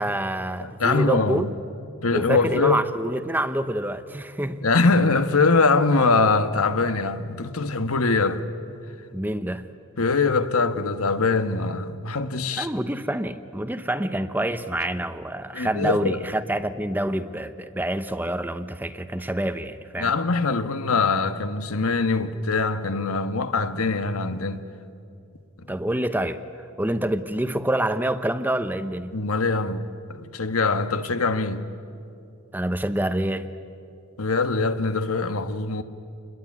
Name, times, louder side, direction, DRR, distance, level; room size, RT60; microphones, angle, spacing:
voice 1, 0.0-1.5 2.1-4.6 9.1-9.6 12.6-20.1 25.7-26.4 26.8-29.1 32.5-33.5, right 1 dB, 10° right, 0.7 m, -27 dB
voice 2, 0.6-1.5 2.0-2.8 4.6-8.4 10.0-12.7 15.5-16.2 20.0-24.6 29.1-31.6 34.2-35.8, left 3 dB, 90° left, 1.4 m, -23 dB
28.5 x 21.0 x 9.7 m
head